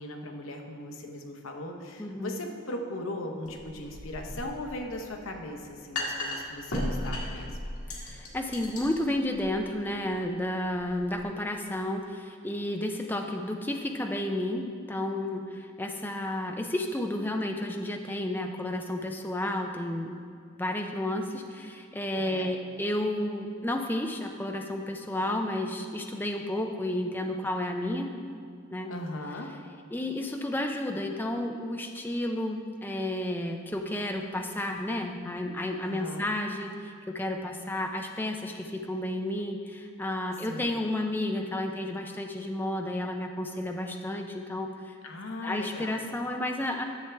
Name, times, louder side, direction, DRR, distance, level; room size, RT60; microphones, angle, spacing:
voice 1, 0.0-7.6 22.2-22.5 28.9-29.5 35.8-36.3 40.4-40.7 45.0-46.0, left 1 dB, 65° left, 3 dB, 0.8 m, -38 dB
voice 2, 2.0-2.4 8.0-20.2 20.6-28.1 28.7-28.9 29.9-45.0 45.4-46.8, left 1 dB, 10° left, 3 dB, 0.4 m, -32 dB
sound 1, 3.5-11.2, left 1 dB, 80° left, 1.5 m, -37 dB
10.5 x 6.9 x 3.4 m, 2.3 s
head